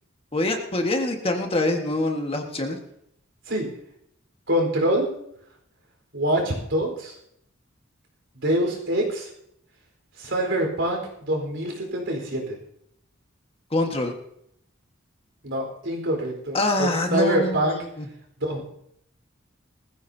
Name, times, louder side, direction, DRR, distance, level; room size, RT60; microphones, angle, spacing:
voice 1, 0.3-2.8 13.7-14.1 16.5-18.1, left 2 dB, 30° left, 3 dB, 1.6 m, -25 dB
voice 2, 4.5-5.1 6.1-7.2 8.4-9.3 10.2-12.6 15.4-17.8 18.4-18.6, right 1 dB, 70° right, 1 dB, 4.3 m, -25 dB
20.0 x 14.5 x 2.8 m, 0.75 s
head